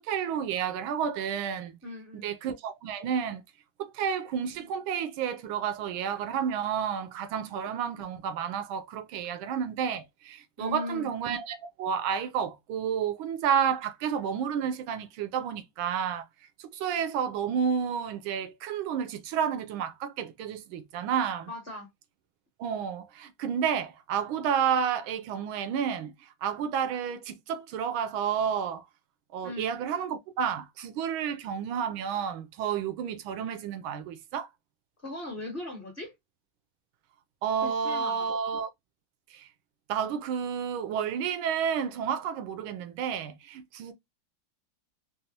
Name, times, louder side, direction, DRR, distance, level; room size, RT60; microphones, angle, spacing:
voice 1, 0.0-1.8 2.1-3.4 3.8-16.3 16.6-21.5 22.6-28.8 29.3-34.5 37.4-38.7 39.3-39.5 39.9-43.9, right 7 dB, 80° right, 1.3 m, -31 dB
voice 2, 1.8-2.3 10.6-11.1 21.5-21.9 29.4-29.7 35.0-36.1 37.6-38.3, left 2 dB, 35° left, 1.1 m, -38 dB
4.1 x 2.0 x 2.7 m
omnidirectional pair, 2.3 m